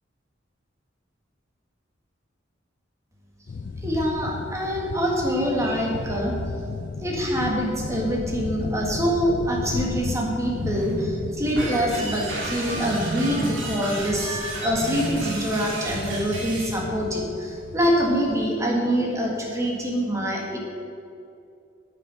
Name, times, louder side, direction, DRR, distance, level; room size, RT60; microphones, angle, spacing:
sound 1, 3.5-18.5, left 4 dB, 45° left, 0.3 m, -35 dB
voice 1, 3.8-6.4 7.0-20.6, equal, 15° right, -1 dB, 1.7 m, -25 dB
sound 2, 10.4-16.5, right 2 dB, 55° right, 0.7 m, -36 dB
sound 3, 11.6-16.8, right 2 dB, 80° right, 2.2 m, -33 dB
9.4 x 7.6 x 5.6 m, 2.5 s
head